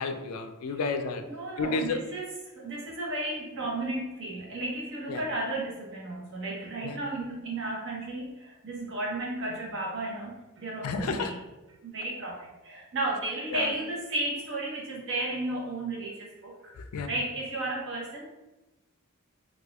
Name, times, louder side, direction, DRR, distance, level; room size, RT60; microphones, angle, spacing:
voice 1, 0.0-1.2 1.6-2.0 5.1-5.2 6.8-7.0 10.8-11.3 13.5-13.7 16.6-17.1, left 4 dB, 85° left, 7 dB, 0.4 m, -31 dB
voice 2, 1.2-11.4 11.8-16.7 17.0-18.3, right 2 dB, 60° right, -3 dB, 0.9 m, -34 dB
4.1 x 2.4 x 2.3 m, 1.0 s
head